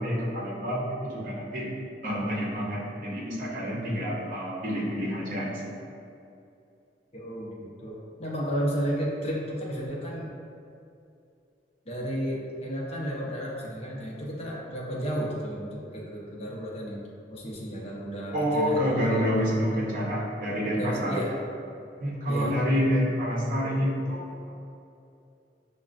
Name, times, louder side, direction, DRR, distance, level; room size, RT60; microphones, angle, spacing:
voice 1, 0.0-1.7 2.0-5.9 18.3-21.2 22.0-24.5, equal, 50° right, -5 dB, 0.8 m, -28 dB
voice 2, 7.1-10.3 11.9-17.0 17.3-19.3 20.7-21.3 22.3-22.6, equal, 35° left, -5 dB, 0.6 m, -33 dB
5.7 x 2.1 x 2.4 m, 2.5 s
head